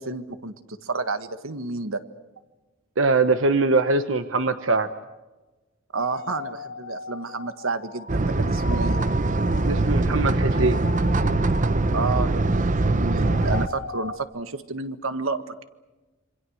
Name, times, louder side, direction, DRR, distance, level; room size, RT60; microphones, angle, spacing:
voice 1, 0.0-2.0 5.9-9.0 11.9-15.6, right 3 dB, 90° right, 10 dB, 1.6 m, -30 dB
voice 2, 3.0-4.9 9.7-10.8, right 3 dB, 70° right, 10 dB, 1.1 m, -22 dB
sound 1, 6.0-12.8 13.0-14.2, left 2 dB, 60° left, 3.4 m, -38 dB
sound 2, 8.1-13.7, right 2 dB, 40° right, 0.8 m, -22 dB
27.5 x 26.0 x 6.5 m, 1.1 s
head